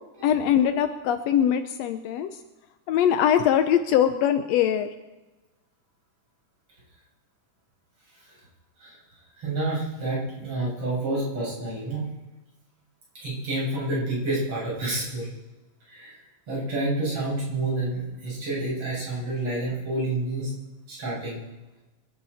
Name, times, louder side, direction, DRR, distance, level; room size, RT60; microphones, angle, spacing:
voice 1, 0.2-2.3 2.9-4.9, left 9 dB, 80° left, 8 dB, 1.5 m, -22 dB
voice 2, 9.4-12.1 13.2-15.3 15.9-16.1 16.5-20.5 20.9-21.4, right 2 dB, 45° right, -6 dB, 8.1 m, -29 dB
26.0 x 12.0 x 4.2 m, 1.1 s
omnidirectional pair, 3.8 m